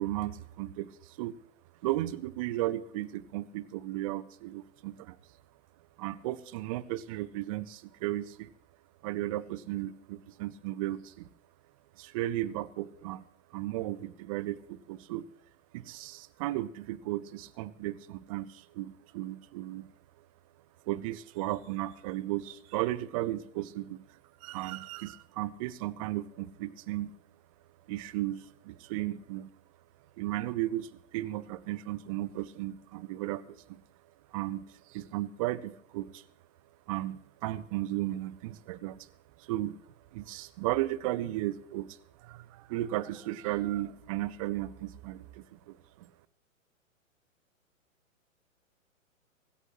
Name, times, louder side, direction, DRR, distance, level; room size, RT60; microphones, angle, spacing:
voice 1, 0.0-1.3 1.8-5.2 6.0-8.5 9.0-11.3 12.0-13.2 13.5-15.3 15.7-19.9 20.9-24.0 24.4-27.1 27.9-29.5 30.2-33.8 34.3-36.2 36.9-39.1 39.4-39.8 40.1-46.1, right 15 dB, 25° right, 19 dB, 0.6 m, -35 dB
24.0 x 12.5 x 2.9 m, 0.68 s
figure-of-eight pair, 120°, 40 cm